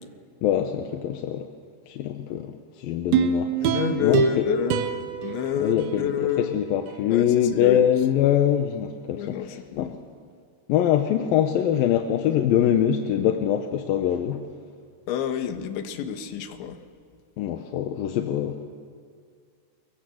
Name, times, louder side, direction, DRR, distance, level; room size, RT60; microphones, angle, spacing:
voice 1, 0.4-1.5 1.9-4.4 5.6-9.9 10.7-14.5 17.4-18.6, left 10 dB, 70° left, 6 dB, 2.3 m, -24 dB
sound 1, 3.1-6.4 6.9-7.0, right 7 dB, 90° right, 3.5 m, -26 dB
voice 2, 3.6-6.6 7.1-7.8 9.1-9.9 15.1-16.8, left 9 dB, 90° left, 8 dB, 3.7 m, -29 dB
28.5 x 23.0 x 7.9 m, 2.2 s
omnidirectional pair, 5.0 m